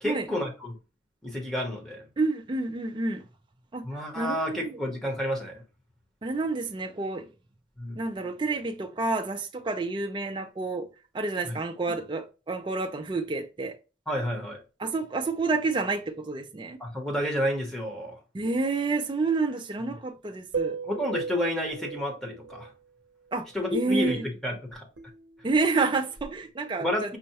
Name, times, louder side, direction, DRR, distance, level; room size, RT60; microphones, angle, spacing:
voice 1, 0.0-0.8 1.2-2.0 3.8-5.6 7.8-8.0 11.5-11.6 14.1-14.6 16.8-18.2 20.8-22.7 23.5-24.9 26.8-27.2, left 1 dB, 5° left, 0.8 m, -30 dB
voice 2, 2.2-3.2 3.7-4.8 6.2-7.3 8.0-10.9 11.1-13.8 14.8-16.8 18.3-20.8 23.3-23.4 23.7-24.3 25.4-27.2, right 3 dB, 25° right, 0.3 m, -29 dB
sound 1, 20.5-22.7 25.0-26.5, right 5 dB, 70° right, 0.6 m, -37 dB
5.4 x 2.1 x 2.8 m
head